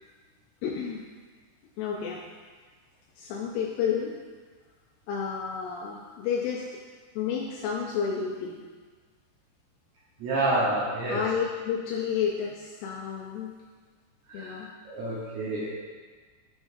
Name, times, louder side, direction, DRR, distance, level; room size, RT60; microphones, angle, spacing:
voice 1, 0.6-1.0 1.8-2.3 3.2-4.2 5.1-6.8 7.2-8.6 11.1-13.6 14.3-14.7, left 7 dB, 85° left, 0 dB, 2.3 m, -31 dB
voice 2, 10.2-11.2 14.3-14.5 14.9-15.7, right 2 dB, 75° right, -7 dB, 1.7 m, -28 dB
9.7 x 6.4 x 2.7 m, 1.5 s
omnidirectional pair, 5.0 m